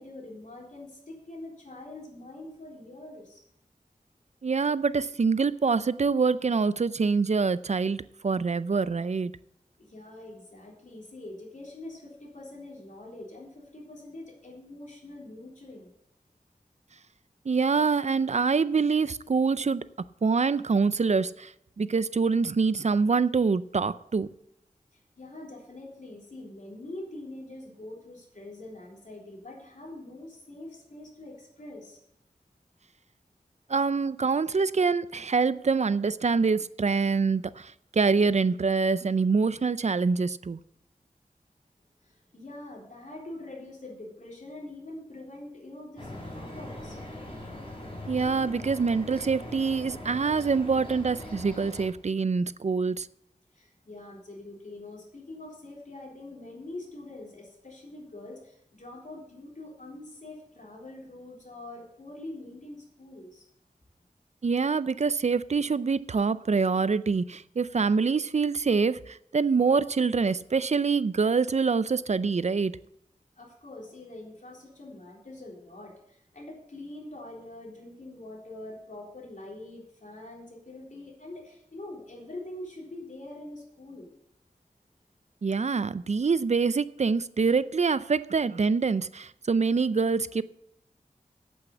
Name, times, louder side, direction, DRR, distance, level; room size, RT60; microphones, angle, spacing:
voice 1, 0.0-3.4 9.8-15.9 24.9-32.0 42.0-47.0 53.5-63.5 73.4-84.1, left 2 dB, 60° left, -2 dB, 3.7 m, -44 dB
voice 2, 4.4-9.3 17.5-19.8 20.2-21.5 21.8-24.3 33.7-40.6 48.1-53.1 64.4-72.8 85.4-90.4, right 4 dB, 50° right, 16 dB, 0.5 m, -25 dB
sound 1, 46.0-51.9, left 1 dB, 40° left, 4.5 m, -41 dB
8.4 x 8.4 x 7.1 m, 0.76 s
wide cardioid pair, 60°, 14 cm